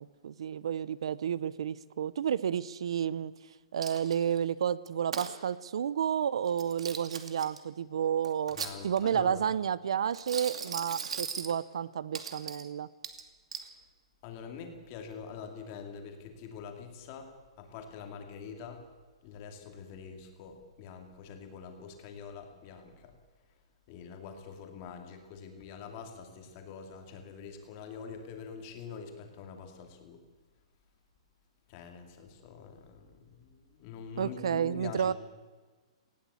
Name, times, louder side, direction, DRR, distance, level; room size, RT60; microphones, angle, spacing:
voice 1, 0.0-3.3 3.7-8.6 8.8-12.9 34.2-35.1, right 8 dB, 60° right, 19 dB, 0.7 m, -31 dB
Coin (dropping), 3.8-4.4 4.9-5.3 6.5-7.6 8.2-9.2 10.1-11.5 12.1-12.7 13.0-13.7, right 6 dB, 75° right, 2.5 m, -39 dB
voice 2, 8.5-9.4 13.5-13.7 14.2-18.8 19.2-23.1 23.9-30.2 31.7-35.1, left 6 dB, 25° left, 5 dB, 2.5 m, -45 dB
19.0 x 17.0 x 8.4 m, 1.3 s
hypercardioid pair, 180°, 3 cm